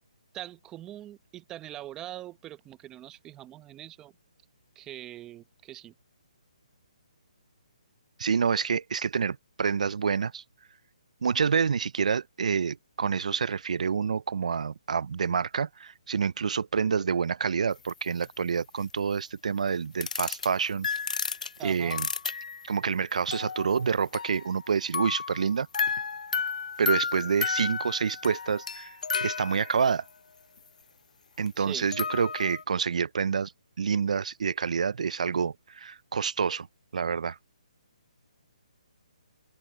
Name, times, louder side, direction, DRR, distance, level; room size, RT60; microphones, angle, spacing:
voice 1, 0.3-4.1 4.8-5.9 21.6-22.0 31.6-31.9, right 13 dB, 15° right, 1.0 m, -42 dB
voice 2, 8.2-10.4 11.2-20.9 21.6-22.1 22.7-25.7 26.8-30.0 31.4-33.5 33.8-36.7 36.9-37.4, right 6 dB, 65° right, 0.5 m, -28 dB
sound 1, 17.9-18.0 18.2-18.3 20.0-20.5 20.8-22.8 23.3-24.7 24.9-30.1 31.5-31.6 31.9-32.6, left 5 dB, 75° left, 0.6 m, -32 dB
open air
hypercardioid pair, 165°, 4 cm